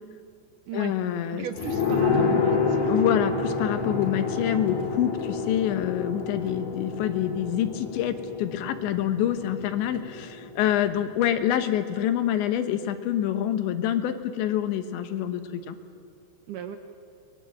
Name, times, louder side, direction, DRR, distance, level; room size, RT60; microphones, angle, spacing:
voice 1, 0.7-1.5 2.9-15.8, left 11 dB, 80° left, 9 dB, 3.5 m, -26 dB
voice 2, 1.3-2.9 16.5-16.8, right 8 dB, 75° right, 8 dB, 1.9 m, -36 dB
sound 1, 1.6-10.9 11.1-11.2, left 4 dB, 45° left, 3.8 m, -28 dB
29.5 x 21.5 x 7.7 m, 2.4 s
omnidirectional pair, 5.1 m